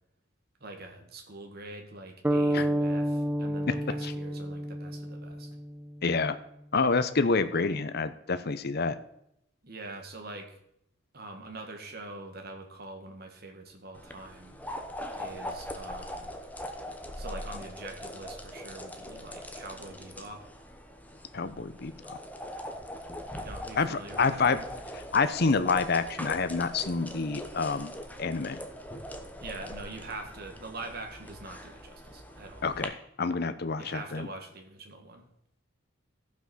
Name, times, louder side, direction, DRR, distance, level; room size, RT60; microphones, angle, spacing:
voice 1, 0.6-5.5 9.6-10.5 11.1-14.6 15.1-16.4 17.2-20.5 23.3-24.7 29.4-32.6 33.8-35.2, right 2 dB, 50° right, 4 dB, 2.0 m, -44 dB
sound 1, 2.2-6.2, equal, 10° right, 0.4 m, -30 dB
voice 2, 6.0-6.4 6.7-9.0 21.3-22.2 23.8-24.6 25.1-27.9 28.2-28.6 32.6-34.3, left 4 dB, 55° left, 11 dB, 0.7 m, -28 dB
sound 2, 13.9-32.9, left 1 dB, 10° left, 1.0 m, -41 dB
14.5 x 6.0 x 6.2 m, 0.75 s
head